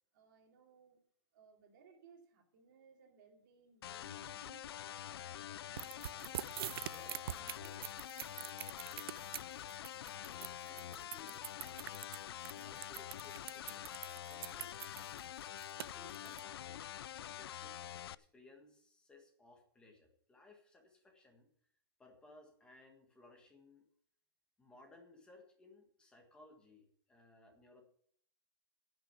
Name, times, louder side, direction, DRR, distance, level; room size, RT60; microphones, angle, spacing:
voice 1, 0.1-1.0 1.3-6.3, right 5 dB, 50° right, 3.2 m, -64 dB
sound 1, 3.8-18.1, left 11 dB, 70° left, 0.4 m, -46 dB
sound 2, 5.8-16.4, right 11 dB, 65° right, 0.4 m, -45 dB
voice 2, 6.8-8.0 10.1-11.9 12.5-14.7 15.9-21.5 22.0-23.8 24.6-27.8, left 3 dB, 5° left, 1.6 m, -61 dB
11.5 x 6.3 x 8.3 m
hypercardioid pair, 165°, 13 cm